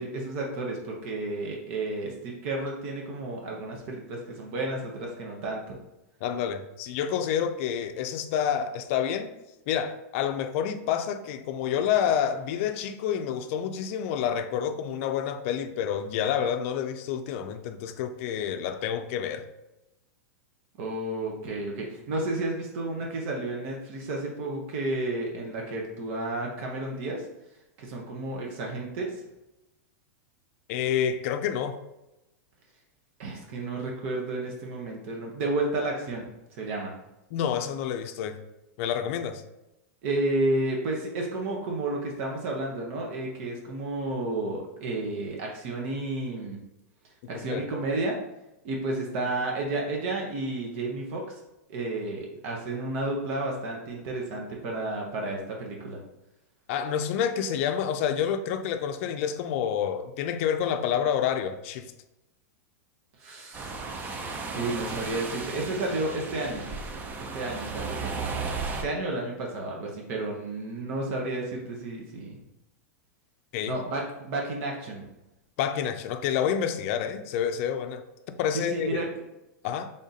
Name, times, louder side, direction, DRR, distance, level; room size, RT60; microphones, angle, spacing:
voice 1, 0.0-5.8 20.8-27.3 27.8-29.2 33.2-36.3 36.6-36.9 40.0-46.6 47.3-48.2 48.6-51.4 51.7-56.0 63.2-66.7 67.3-72.3 73.7-75.1 78.5-79.1, right 2 dB, 55° right, 0.8 m, -32 dB
voice 2, 6.2-9.3 9.7-19.4 30.7-31.8 37.3-38.4 38.8-39.4 47.3-47.6 56.7-61.9 73.5-73.8 75.6-78.0 78.4-79.0 79.6-79.9, left 8 dB, 55° left, 0.4 m, -28 dB
sound 1, 63.5-68.8, right 4 dB, 20° right, 0.5 m, -35 dB
3.5 x 2.6 x 4.0 m
hypercardioid pair, 130°, 9 cm